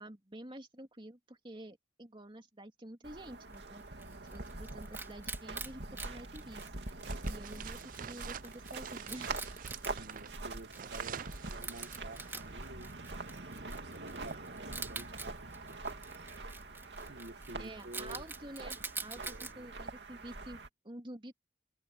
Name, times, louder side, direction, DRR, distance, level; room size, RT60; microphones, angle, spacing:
voice 1, 0.0-3.8 4.3-6.6 7.2-9.4 9.9-10.0 17.6-21.3, right 1 dB, 30° right, 2.8 m, -49 dB
sound 1, 3.0-20.7, right 2 dB, 85° right, 2.5 m, -44 dB
Wild animals, 3.5-19.5, right 3 dB, 15° right, 2.9 m, -47 dB
sound 2, 7.0-12.5, right 8 dB, 50° right, 0.4 m, -47 dB
voice 2, 10.0-12.9 13.4-15.8 17.1-18.2 19.2-19.7, right 1 dB, 70° right, 1.4 m, -51 dB
head